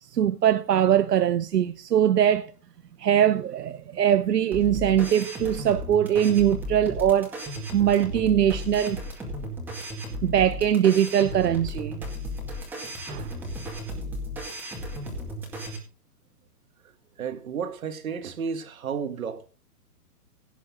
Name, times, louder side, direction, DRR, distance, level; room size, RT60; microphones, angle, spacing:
voice 1, 0.0-2.5 3.0-7.3 7.7-9.0 10.2-12.0 13.1-13.3, right 10 dB, 80° right, 1.0 m, -22 dB
sound 1, 4.5-15.8, equal, 5° right, 2.1 m, -35 dB
voice 2, 17.2-19.5, right 6 dB, 60° right, 2.1 m, -32 dB
17.0 x 8.4 x 3.8 m
hypercardioid pair, 170°, 47 cm